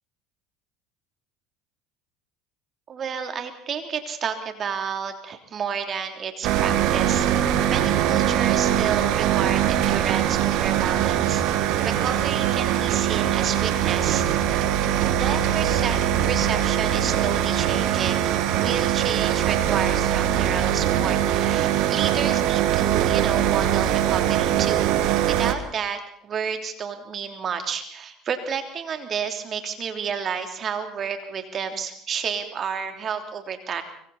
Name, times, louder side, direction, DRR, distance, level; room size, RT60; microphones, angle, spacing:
voice 1, 2.9-7.3 7.7-11.4 11.8-14.3 15.2-16.0 16.3-24.9 25.2-33.8, right 7 dB, 40° right, 5 dB, 3.2 m, -30 dB
sound 1, 6.4-25.5, right 11 dB, 65° right, 1.8 m, -22 dB
25.5 x 24.5 x 4.3 m, 0.63 s
hypercardioid pair, 75°, 0 cm